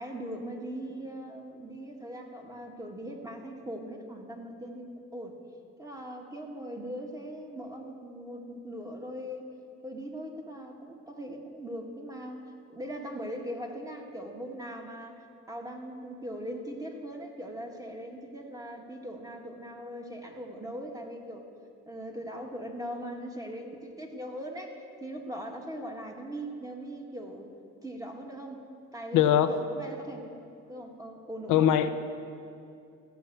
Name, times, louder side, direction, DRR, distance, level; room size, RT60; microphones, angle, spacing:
voice 1, 0.0-4.9 5.1-5.4 5.8-9.6 9.8-21.4 21.9-27.5 27.8-28.6 28.9-31.8, equal, 10° right, 1 dB, 1.6 m, -40 dB
voice 2, 29.1-29.5 31.5-31.9, left 10 dB, 85° left, 9 dB, 0.6 m, -21 dB
15.0 x 5.8 x 7.8 m, 2.5 s
cardioid pair, 90°, 30 cm